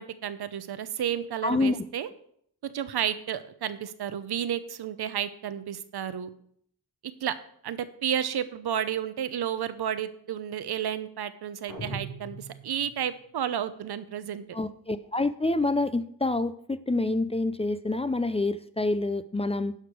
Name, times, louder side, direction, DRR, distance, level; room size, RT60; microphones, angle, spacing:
voice 1, 0.0-2.1 2.6-6.3 7.2-7.4 7.6-14.4, right 9 dB, 75° right, 12 dB, 0.8 m, -31 dB
voice 2, 1.4-1.8 14.5-19.7, left 2 dB, 15° left, 13 dB, 0.5 m, -27 dB
sound 1, 11.7-13.1, right 2 dB, 80° left, 3.7 m, -39 dB
11.0 x 5.1 x 6.1 m, 0.66 s
cardioid pair, 75°, 39 cm